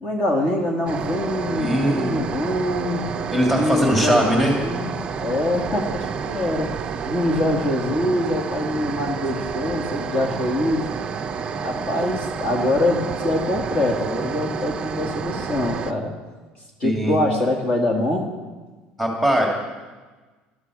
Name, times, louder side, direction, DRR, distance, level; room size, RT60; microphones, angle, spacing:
voice 1, 0.0-3.0 3.4-4.9 5.2-6.7 7.1-10.8 11.6-16.1 16.8-18.3, left 1 dB, 35° left, 1 dB, 2.1 m, -24 dB
sound 1, 0.9-15.9, right 6 dB, 30° right, 0.6 m, -29 dB
voice 2, 1.6-2.1 3.3-4.5 16.8-17.2 19.0-19.5, equal, 5° left, -1 dB, 2.3 m, -20 dB
19.5 x 12.5 x 4.8 m, 1.3 s
cardioid pair, 170°, 4 cm